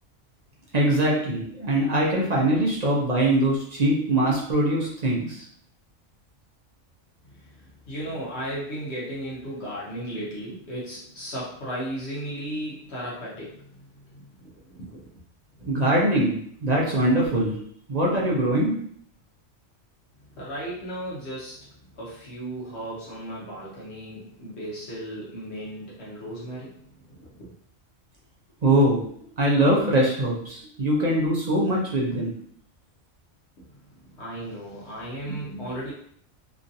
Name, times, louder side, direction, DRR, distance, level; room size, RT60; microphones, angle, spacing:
voice 1, 0.7-5.4 15.7-17.6 17.9-18.7 28.6-29.0 29.4-32.3, right 1 dB, 45° right, -4 dB, 0.6 m, -22 dB
voice 2, 7.2-15.1 15.6-15.8 20.3-27.5 33.6-33.8 34.1-35.9, right 1 dB, 65° left, -7 dB, 1.0 m, -36 dB
3.0 x 2.5 x 2.6 m, 0.62 s
omnidirectional pair, 1.3 m